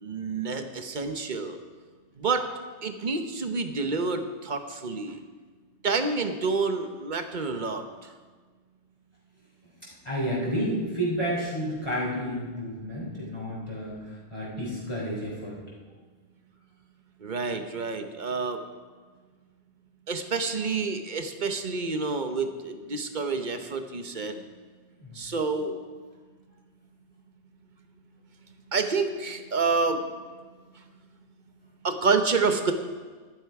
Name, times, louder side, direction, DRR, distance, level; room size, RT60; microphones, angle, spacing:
voice 1, 0.0-1.6 2.2-2.4 2.8-5.2 5.8-7.8 17.2-18.6 20.1-24.4 25.2-25.7 28.7-30.0 31.8-32.7, right 4 dB, 45° right, 7 dB, 1.0 m, -28 dB
voice 2, 10.0-15.6 25.0-25.2, equal, 25° left, -6 dB, 3.3 m, -31 dB
12.0 x 11.5 x 4.8 m, 1.5 s
omnidirectional pair, 1.2 m